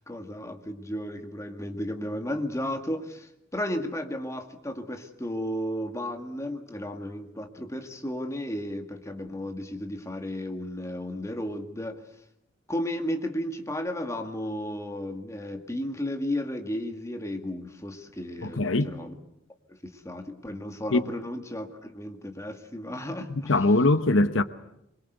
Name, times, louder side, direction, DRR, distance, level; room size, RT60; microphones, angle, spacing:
voice 1, 0.0-12.0 12.7-19.1 19.7-23.6, left 1 dB, 15° left, 2.1 m, -34 dB
voice 2, 18.4-18.9 20.9-21.0 23.4-24.4, left 2 dB, 85° left, 1.0 m, -22 dB
25.5 x 22.5 x 8.1 m
head